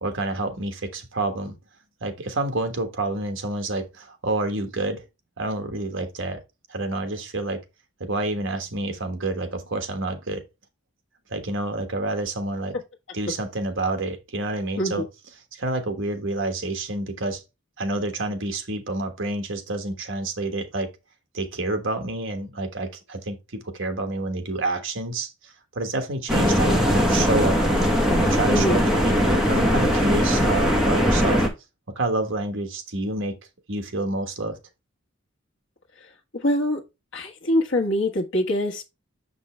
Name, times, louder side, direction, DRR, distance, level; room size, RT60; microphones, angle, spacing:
voice 1, 0.0-1.6 2.0-5.0 5.4-6.4 6.7-7.6 8.0-10.4 11.3-12.8 13.1-15.0 15.5-17.4 17.8-20.9 21.3-23.4 23.6-27.6 28.2-31.4 31.9-33.3 33.7-34.6, right 2 dB, 65° right, 1.3 m, -28 dB
sound 1, 26.3-31.5, equal, 5° right, 1.3 m, -20 dB
voice 2, 28.5-28.8 36.4-36.8 37.1-38.8, left 1 dB, 60° left, 1.4 m, -24 dB
6.8 x 5.4 x 3.3 m
head